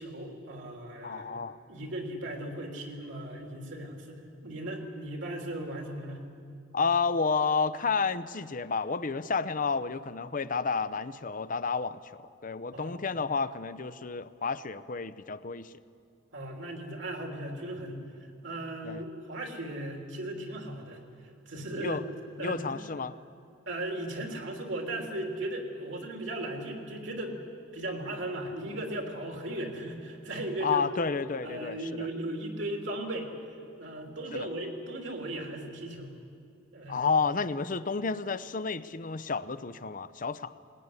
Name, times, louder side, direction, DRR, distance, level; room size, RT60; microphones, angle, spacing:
voice 1, 0.0-1.4 1.7-6.2 12.7-13.0 16.3-18.0 18.4-21.0 21.4-22.0 22.4-22.8 23.6-27.4 27.7-30.9 31.4-33.3 33.8-36.1 36.7-37.1, right 1 dB, 65° right, 1 dB, 3.4 m, -37 dB
voice 2, 1.0-1.6 6.7-15.7 18.8-19.0 21.8-22.0 22.4-23.2 30.6-32.1 34.3-34.5 36.9-40.5, left 5 dB, 40° left, 14 dB, 0.7 m, -31 dB
20.5 x 20.0 x 9.8 m, 2.4 s
head